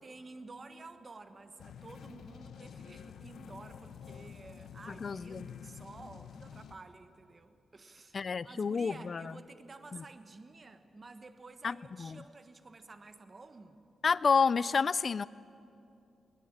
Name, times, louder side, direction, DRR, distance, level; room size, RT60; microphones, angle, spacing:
voice 1, 0.0-13.8, right 3 dB, 30° right, 1.3 m, -51 dB
sound 1, 1.6-6.8, left 7 dB, 75° left, 0.9 m, -49 dB
voice 2, 4.9-5.5 8.1-9.3 9.9-10.0 11.6-12.2 14.0-15.3, left 5 dB, 40° left, 0.4 m, -30 dB
21.5 x 20.0 x 8.8 m
cardioid pair, 110°, 0 cm